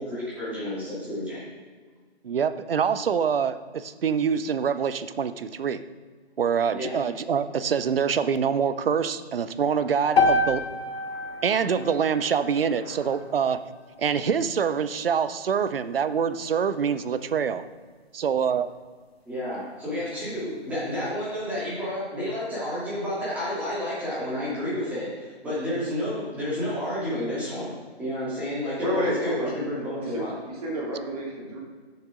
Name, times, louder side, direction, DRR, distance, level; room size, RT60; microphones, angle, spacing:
voice 1, 0.0-1.4 6.7-6.9 19.3-30.3, left 1 dB, 5° right, -10 dB, 2.7 m, -30 dB
voice 2, 2.2-5.8 6.4-10.7 11.4-13.6 14.0-17.7 18.1-18.7, right 7 dB, 60° right, 12 dB, 0.6 m, -25 dB
sound 1, 10.2-14.3, left 3 dB, 65° left, 1.2 m, -28 dB
voice 3, 11.1-11.7 12.9-13.2 28.8-29.5 30.1-30.2 30.6-31.6, equal, 35° right, -3 dB, 2.7 m, -31 dB
7.1 x 6.6 x 5.2 m, 1.5 s
figure-of-eight pair, 160°, 33 cm